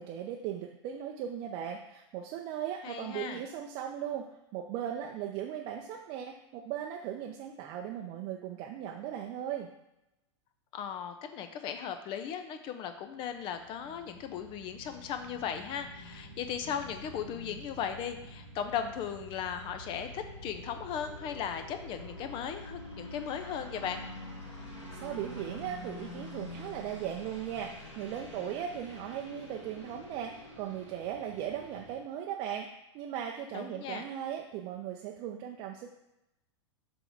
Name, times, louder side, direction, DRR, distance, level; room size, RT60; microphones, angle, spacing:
voice 1, 0.0-9.7 25.0-32.7 32.9-35.9, right 10 dB, 35° right, 2 dB, 0.6 m, -38 dB
voice 2, 2.8-3.4 10.7-24.0 33.5-34.0, left 8 dB, 30° left, 8 dB, 0.5 m, -37 dB
sound 1, 13.2-32.0, left 1 dB, 80° left, 2.0 m, -47 dB
6.8 x 3.7 x 4.5 m, 0.91 s
figure-of-eight pair, 95°, 16 cm